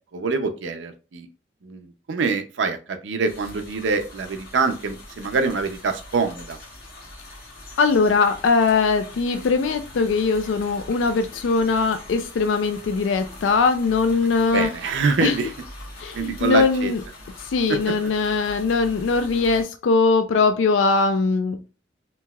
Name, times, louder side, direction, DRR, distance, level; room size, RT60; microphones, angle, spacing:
voice 1, 0.1-1.3 1.6-6.6 14.5-15.5 16.1-16.9 17.7-17.9, right 4 dB, 75° right, 7 dB, 0.5 m, -25 dB
sound 1, 3.3-19.6, left 1 dB, 55° left, 1.1 m, -42 dB
voice 2, 7.8-14.7 15.2-15.4 16.0-17.0 17.5-21.6, left 4 dB, 85° left, 8 dB, 0.3 m, -21 dB
3.0 x 2.8 x 2.2 m, 0.32 s
head